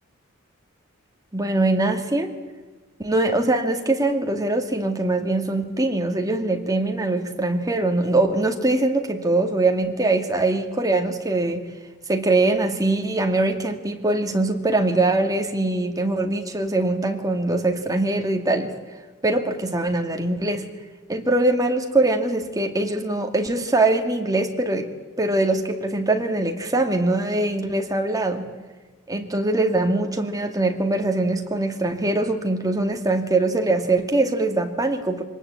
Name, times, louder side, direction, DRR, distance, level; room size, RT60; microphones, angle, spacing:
voice 1, 1.3-2.3 3.0-11.6 12.1-18.7 19.2-20.7 21.1-24.9 25.2-28.5 29.1-35.2, right 2 dB, 15° right, 4 dB, 2.2 m, -22 dB
25.0 x 19.5 x 8.4 m, 1.3 s
head